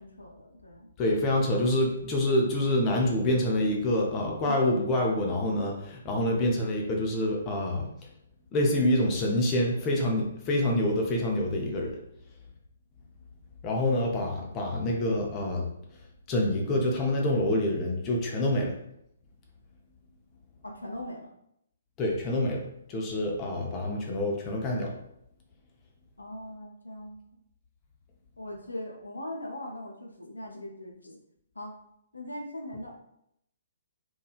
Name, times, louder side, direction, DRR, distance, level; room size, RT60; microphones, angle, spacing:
voice 1, 0.0-0.9 4.4-4.6 20.6-21.3 26.2-27.2 28.4-31.2 31.5-31.7 32.1-33.0, left 1 dB, 75° left, 0 dB, 0.5 m, -40 dB
voice 2, 1.0-7.9 8.5-12.0 13.6-15.7 16.3-18.7 22.0-22.6 22.9-24.9, left 1 dB, 20° left, -1 dB, 0.5 m, -26 dB
3.0 x 2.2 x 2.4 m, 0.76 s
figure-of-eight pair, 130°, 0 cm